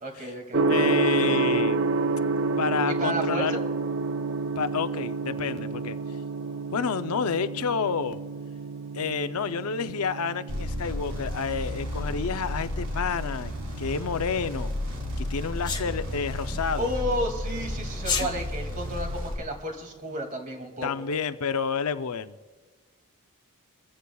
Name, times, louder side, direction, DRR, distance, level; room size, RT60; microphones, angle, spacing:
voice 1, 0.0-0.6 2.9-3.6 16.5-20.9, equal, 35° right, 3 dB, 2.3 m, -32 dB
Gong, 0.5-18.4, right 3 dB, 55° right, 0.5 m, -30 dB
voice 2, 0.7-1.8 2.6-3.6 4.6-6.0 6.7-8.2 8.9-13.5 13.8-14.7 15.2-16.9 20.8-22.4, left 6 dB, 85° left, 11 dB, 0.6 m, -29 dB
sound 1, 10.5-19.3, left 1 dB, 80° right, 4.4 m, -33 dB
Sneeze, 15.6-15.9 18.0-18.3, left 5 dB, 20° left, 1.4 m, -27 dB
24.5 x 15.0 x 2.3 m, 1.4 s
head